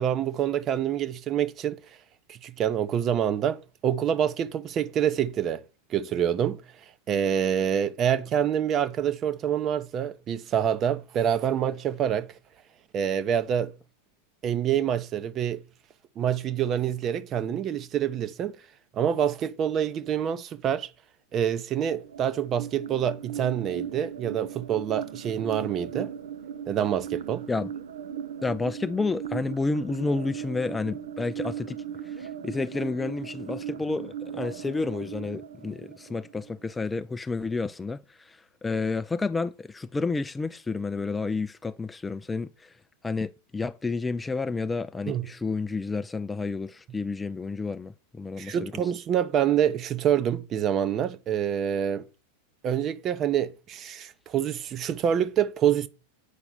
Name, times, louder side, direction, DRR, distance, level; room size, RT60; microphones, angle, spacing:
voice 1, 0.0-1.8 2.3-5.6 5.9-6.6 7.1-12.3 12.9-13.7 14.4-15.6 16.2-18.6 18.9-20.9 21.3-26.1 26.7-27.5 45.1-45.3 48.4-52.1 52.6-55.9, right 9 dB, 30° right, 0.8 m, -26 dB
sound 1, 21.8-36.7, right 8 dB, 60° right, 0.7 m, -38 dB
voice 2, 28.4-42.7 43.0-48.7, left 3 dB, 10° left, 0.5 m, -30 dB
8.3 x 5.8 x 7.9 m
figure-of-eight pair, 90°, 0 cm